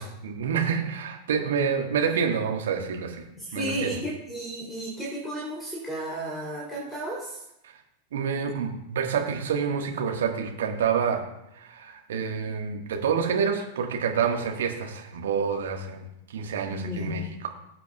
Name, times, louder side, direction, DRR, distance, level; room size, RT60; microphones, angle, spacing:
voice 1, 0.0-3.2 3.5-3.9 8.1-11.2 11.5-16.0 16.3-17.5, right 6 dB, 60° right, 3 dB, 1.5 m, -28 dB
voice 2, 3.4-7.4 16.7-17.2, right 1 dB, 5° left, -5 dB, 3.2 m, -33 dB
19.5 x 7.8 x 2.4 m, 0.85 s
figure-of-eight pair, 90°, 0 cm